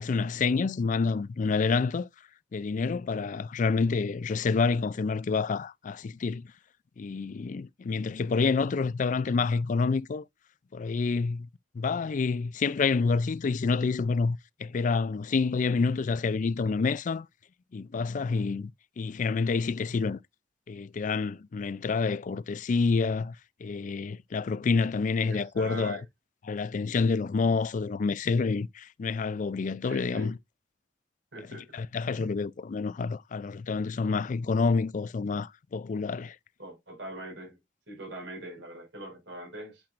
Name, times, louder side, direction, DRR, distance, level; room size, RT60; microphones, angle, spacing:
voice 1, 0.0-2.1 2.5-6.5 7.0-10.2 10.7-11.5 11.7-17.3 17.7-18.7 19.0-20.2 20.7-23.4 23.6-26.0 26.5-30.4 31.7-36.4, left 4 dB, 45° left, 0.4 m, -28 dB
voice 2, 25.2-26.0 29.9-30.3 31.3-31.7 32.1-32.3 36.6-37.6 37.9-39.8, right 1 dB, 90° right, 4.9 m, -42 dB
8.8 x 7.4 x 2.5 m
head